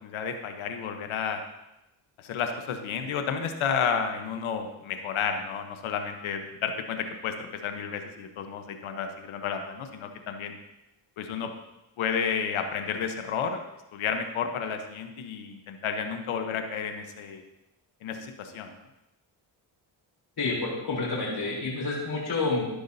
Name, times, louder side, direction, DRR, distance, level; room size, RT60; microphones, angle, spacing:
voice 1, 0.0-1.4 2.2-10.5 11.2-11.5 12.0-13.6 13.9-17.4 18.0-18.7, left 6 dB, 85° left, 6 dB, 1.1 m, -31 dB
voice 2, 20.4-22.7, left 3 dB, 55° left, -4 dB, 3.7 m, -29 dB
13.0 x 10.5 x 2.8 m, 0.94 s
cardioid pair, 80°, 47 cm